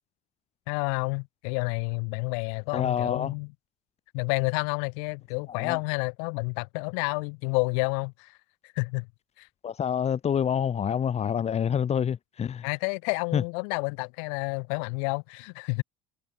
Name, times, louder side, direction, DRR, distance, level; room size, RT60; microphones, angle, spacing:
voice 1, 0.7-3.5 4.1-8.4 8.6-9.1 9.4-9.5 12.6-15.8, left 40 dB or more, 70° left, 5.6 m, -30 dB
voice 2, 2.7-3.3 5.5-5.8 9.6-12.7 13.3-13.4, left 8 dB, 40° left, 4.2 m, -27 dB
hypercardioid pair, 70°, 17 cm